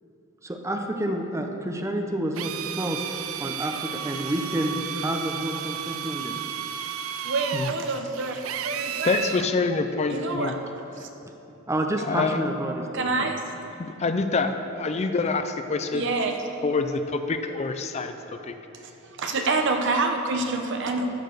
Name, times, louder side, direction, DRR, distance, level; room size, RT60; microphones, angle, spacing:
voice 1, 0.4-3.0 3.4-6.3 10.9-11.0 11.7-13.4, right 1 dB, 15° right, 3 dB, 0.6 m, -29 dB
Drill, 2.3-9.5, right 10 dB, 75° right, 0.4 m, -33 dB
voice 2, 7.2-9.1 10.1-10.5 11.0-11.1 12.9-13.6 15.9-16.4 18.8-21.1, right 3 dB, 60° right, 4 dB, 0.9 m, -27 dB
voice 3, 9.0-10.5 12.0-12.4 13.8-16.1 16.6-18.5, left 4 dB, 30° left, 8 dB, 0.4 m, -26 dB
13.0 x 4.5 x 6.5 m, 3.0 s
head